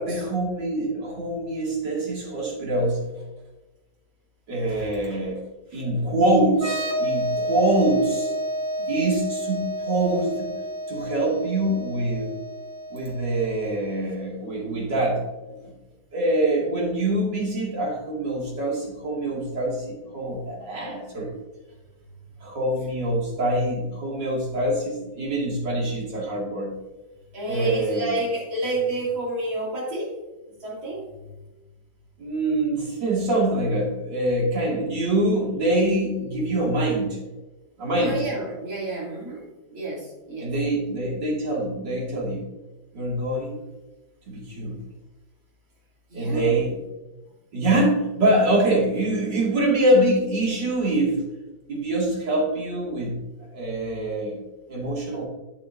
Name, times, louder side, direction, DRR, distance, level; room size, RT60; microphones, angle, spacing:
voice 1, 0.0-3.1 4.5-5.4 5.7-8.3 8.9-10.5 10.9-12.4 12.9-15.6 16.1-21.3 22.4-26.7 27.5-28.2 32.2-37.2 37.8-38.2 40.4-42.5 42.9-43.6 44.3-44.8 46.1-46.8 47.5-51.2 51.7-53.2 53.5-54.4 54.7-55.2, right 1 dB, 65° right, -3 dB, 3.1 m, -24 dB
sound 1, 6.5-14.0, equal, 30° right, 1.3 m, -30 dB
voice 2, 27.3-30.2 30.6-31.1 37.9-40.5 46.1-46.6, right 2 dB, 80° right, -5 dB, 3.7 m, -30 dB
9.4 x 8.3 x 2.7 m, 1.1 s
omnidirectional pair, 2.1 m